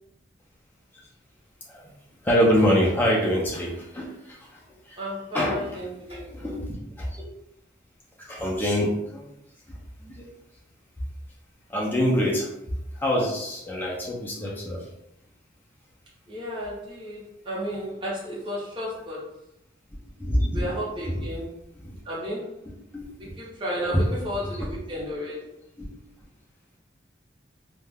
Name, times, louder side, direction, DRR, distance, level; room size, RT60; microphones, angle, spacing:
voice 1, 2.2-4.6 4.9-5.0 5.3-5.6 6.3-6.7 7.0-7.1 8.2-9.2 9.7-10.3 11.7-12.5 13.0-14.9 20.2-20.7 21.0-21.2 21.8-21.9 22.9-23.1 23.9-24.1 24.6-24.7 25.8-25.9, equal, 10° left, -4 dB, 0.4 m, -25 dB
voice 2, 5.0-6.6 13.9-14.1 16.3-19.3 20.5-21.5 22.0-22.5 23.2-25.5, equal, 25° right, -7 dB, 0.8 m, -33 dB
2.3 x 2.1 x 3.3 m, 0.83 s
head